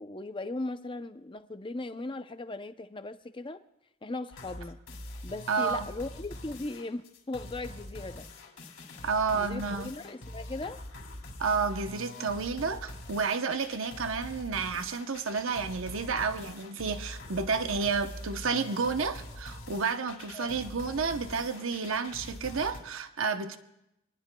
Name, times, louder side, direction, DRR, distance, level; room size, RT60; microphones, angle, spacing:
voice 1, 0.0-3.6 4.0-4.8 5.2-8.3 9.3-10.8 20.3-20.6, left 2 dB, 25° left, 0.5 m, -38 dB
sound 1, 4.3-22.8, left 1 dB, 65° left, 2.7 m, -44 dB
voice 2, 5.5-5.9 9.0-9.9 11.4-23.6, right 5 dB, 65° right, 0.8 m, -31 dB
26.5 x 20.0 x 2.3 m
head